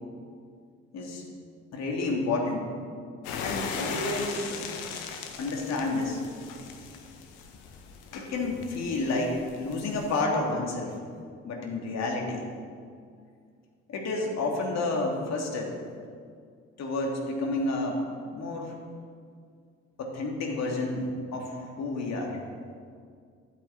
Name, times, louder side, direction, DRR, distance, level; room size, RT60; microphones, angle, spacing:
voice 1, 1.7-2.7 3.4-4.7 5.4-6.2 8.1-10.9 11.4-12.5 13.9-15.7 16.8-18.0 18.3-18.7 20.0-22.4, left 2 dB, 50° left, 0 dB, 2.9 m, -30 dB
sound 1, 3.2-10.2, left 6 dB, 65° left, 1.6 m, -39 dB
12.0 x 9.6 x 7.5 m, 2.2 s
figure-of-eight pair, 50°, 33 cm